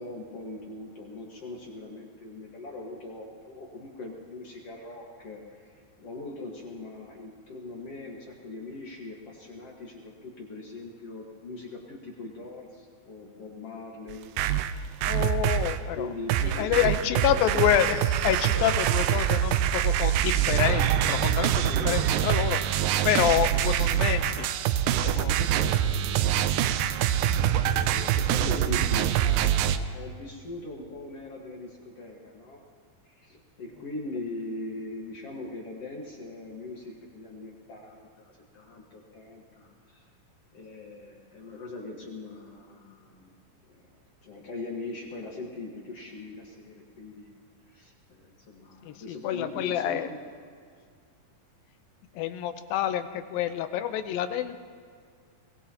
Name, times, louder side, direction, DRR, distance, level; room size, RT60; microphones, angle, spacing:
voice 1, 0.0-14.3 15.0-15.6 15.9-17.7 21.6-22.0 25.3-27.0 27.7-32.6 33.0-40.1 40.5-43.3 43.7-43.8 44.2-47.3 47.7-50.2, left 2 dB, 50° left, -1 dB, 2.2 m, -41 dB
sound 1, 14.1-15.8 16.3-29.8, right 10 dB, 80° right, 2.0 m, -25 dB
voice 2, 15.1-16.1 16.4-22.6 23.0-24.5 25.0-25.4 48.8-50.1 52.1-54.6, left 11 dB, 85° left, 10 dB, 2.5 m, -28 dB
24.0 x 19.5 x 2.9 m, 2.1 s
omnidirectional pair, 4.1 m